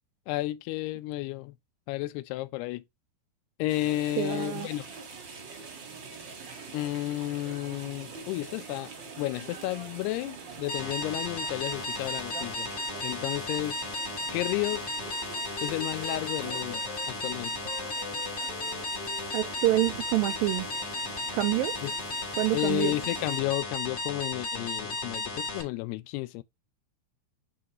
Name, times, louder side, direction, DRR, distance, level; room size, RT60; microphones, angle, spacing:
voice 1, 0.3-1.5 1.9-2.8 3.6-4.9 6.7-8.9 9.2-12.7 13.0-13.8 14.3-14.8 15.6-17.6 21.8-21.9 22.5-26.4, left 17 dB, 90° left, 2.7 m, -32 dB
sound 1, 3.7-23.4, right 5 dB, 50° right, 1.3 m, -44 dB
voice 2, 4.2-4.7 19.3-20.7 21.3-21.8 22.4-22.9, right 15 dB, 85° right, 2.1 m, -27 dB
sound 2, 10.7-25.6, left 2 dB, 50° left, 1.2 m, -34 dB
Wind instrument woodwind instrument, 14.1-17.1 17.6-21.4, left 6 dB, 75° left, 1.4 m, -47 dB
8.5 x 3.8 x 2.9 m
omnidirectional pair, 4.6 m